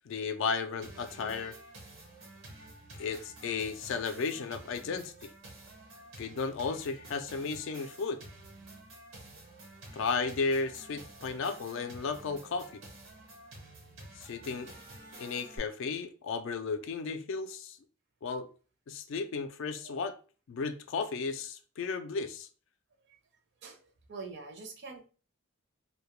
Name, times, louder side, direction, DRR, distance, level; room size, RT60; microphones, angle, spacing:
voice 1, 0.1-1.6 3.0-5.3 6.2-8.2 9.9-12.7 14.2-14.7 15.2-17.8 18.2-18.5 18.9-20.2 20.5-22.5, left 4 dB, 65° left, 0.3 m, -34 dB
sound 1, 0.8-15.6, right 1 dB, 85° right, 1.1 m, -50 dB
voice 2, 23.6-25.0, right 4 dB, 60° right, 0.5 m, -45 dB
2.2 x 2.1 x 2.9 m
head